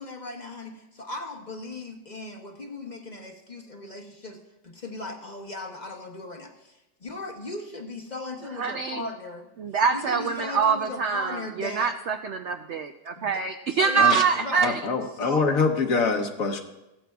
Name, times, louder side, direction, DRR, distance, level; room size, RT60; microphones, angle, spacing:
voice 1, 0.0-4.4 4.6-9.5 9.9-11.9 13.2-13.3 13.7-14.7 15.2-15.4, left 2 dB, 35° left, 3 dB, 0.7 m, -37 dB
voice 2, 8.6-9.1 9.6-14.8, right 5 dB, 80° right, 6 dB, 0.6 m, -25 dB
voice 3, 14.6-16.6, left 4 dB, 60° left, 5 dB, 1.2 m, -24 dB
16.0 x 13.0 x 2.3 m, 0.98 s
omnidirectional pair, 1.9 m